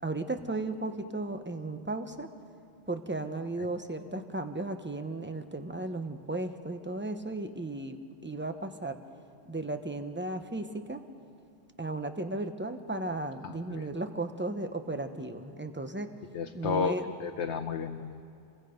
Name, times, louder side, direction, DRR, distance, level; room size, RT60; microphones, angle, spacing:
voice 1, 0.0-2.3 2.9-9.0 9.5-11.0 11.8-16.1 16.5-17.0, right 2 dB, 10° right, 7 dB, 0.9 m, -35 dB
voice 2, 13.4-13.9 16.3-18.2, left 6 dB, 85° left, 5 dB, 1.1 m, -33 dB
28.0 x 23.0 x 5.2 m, 2.6 s
omnidirectional pair, 1.1 m